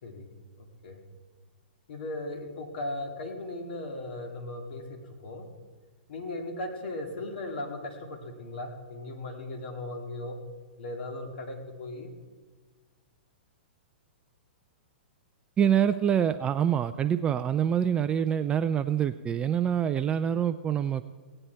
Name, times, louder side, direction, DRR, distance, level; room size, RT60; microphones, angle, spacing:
voice 1, 0.6-1.0 1.9-5.4 6.1-10.4 10.8-12.1, left 2 dB, 65° left, 4 dB, 2.1 m, -37 dB
voice 2, 15.6-21.0, right 9 dB, 20° right, 10 dB, 0.3 m, -26 dB
17.5 x 8.8 x 4.5 m, 1.4 s
hypercardioid pair, 120°, 6 cm